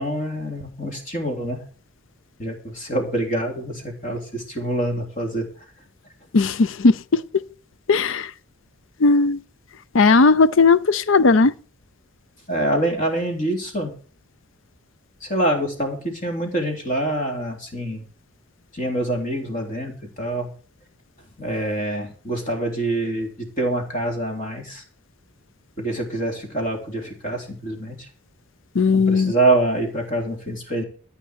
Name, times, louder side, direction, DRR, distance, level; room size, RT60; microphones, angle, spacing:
voice 1, 0.0-1.6 2.4-5.5 12.5-13.9 15.2-18.0 18.7-20.5 21.4-24.8 25.8-28.1 28.9-30.8, right 1 dB, 40° left, 3.3 m, -25 dB
voice 2, 6.3-7.4 7.9-8.3 9.0-9.4 9.9-11.6 28.7-29.3, left 4 dB, 65° left, 0.5 m, -17 dB
13.5 x 5.7 x 8.0 m
head